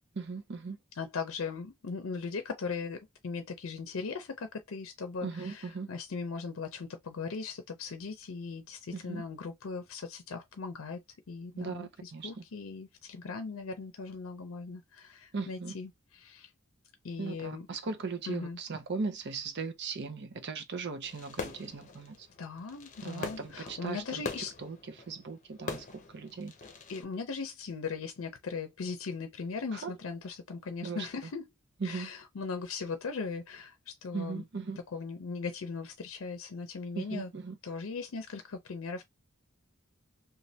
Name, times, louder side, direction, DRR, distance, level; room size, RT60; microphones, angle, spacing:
voice 1, 0.2-0.8 5.2-5.9 8.9-9.2 11.6-12.4 15.3-15.7 17.2-22.3 23.0-24.2 24.6-26.5 29.7-29.9 30.8-31.1 31.8-32.1 34.1-34.8 36.9-37.6, right 4 dB, 55° right, 0.6 m, -38 dB
voice 2, 1.0-11.0 11.3-16.5 17.0-17.7 18.3-18.6 22.4-24.5 26.9-31.4 31.8-34.4 34.9-37.3 37.6-39.0, left 4 dB, 80° left, 0.5 m, -39 dB
Fireworks, 21.0-27.0, left 4 dB, 40° left, 0.7 m, -43 dB
3.1 x 2.2 x 2.7 m
head